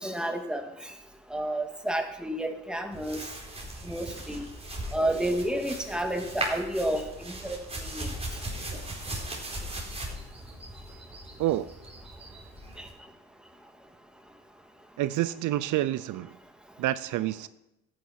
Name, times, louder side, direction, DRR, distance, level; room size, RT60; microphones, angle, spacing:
voice 1, 0.0-0.6 1.3-3.2 3.9-4.4 4.9-7.6 7.9-8.1, right 1 dB, 5° right, 4 dB, 1.8 m, -30 dB
sound 1, 2.9-12.9, right 1 dB, 20° right, 4.1 m, -38 dB
voice 2, 15.0-16.4 16.8-17.5, right 14 dB, 80° right, 16 dB, 0.6 m, -28 dB
13.5 x 9.5 x 5.7 m, 0.88 s
cardioid pair, 90°, 30 cm